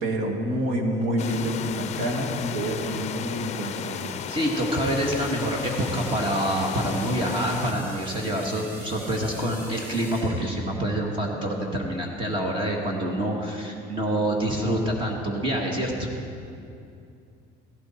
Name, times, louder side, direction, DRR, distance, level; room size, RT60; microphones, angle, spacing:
voice 1, 0.0-4.2, right 1 dB, 75° right, 1 dB, 2.4 m, -28 dB
sound 1, 1.2-7.7, left 9 dB, 40° left, 0.5 m, -34 dB
voice 2, 4.3-16.1, right 1 dB, 30° right, 0 dB, 1.8 m, -26 dB
sound 2, 4.8-11.0, left 1 dB, 10° right, 4.3 m, -43 dB
16.5 x 16.0 x 4.4 m, 2.5 s
cardioid pair, 160°, 18 cm